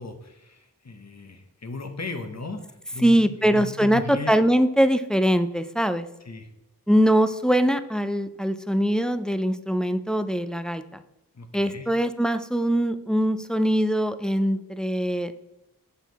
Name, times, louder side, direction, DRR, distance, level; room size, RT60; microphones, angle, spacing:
voice 1, 0.0-4.4 6.2-6.5 11.3-12.0, left 3 dB, 45° left, 6 dB, 0.9 m, -37 dB
voice 2, 3.0-6.1 6.9-11.0 11.5-15.3, equal, ahead, 11 dB, 0.4 m, -22 dB
6.8 x 4.5 x 4.0 m, 0.89 s
wide cardioid pair, 50°, 38 cm